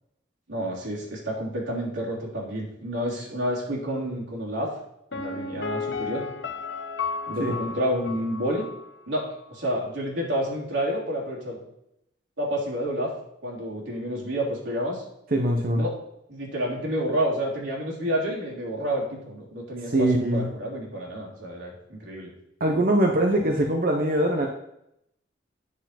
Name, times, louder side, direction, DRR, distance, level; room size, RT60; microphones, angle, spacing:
voice 1, 0.5-4.7 5.1-6.2 7.3-8.7 9.1-9.2 9.5-11.6 12.4-13.1 13.4-15.0 15.7-15.9 16.3-22.3, equal, 90° right, -4 dB, 3.2 m, -29 dB
Piano, 5.1-8.9 9.1-9.2, left 4 dB, 80° left, 1.0 m, -33 dB
voice 2, 15.3-15.8 19.8-20.5 22.6-24.5, right 1 dB, 50° right, 2 dB, 0.8 m, -22 dB
9.7 x 4.6 x 5.9 m, 0.80 s
head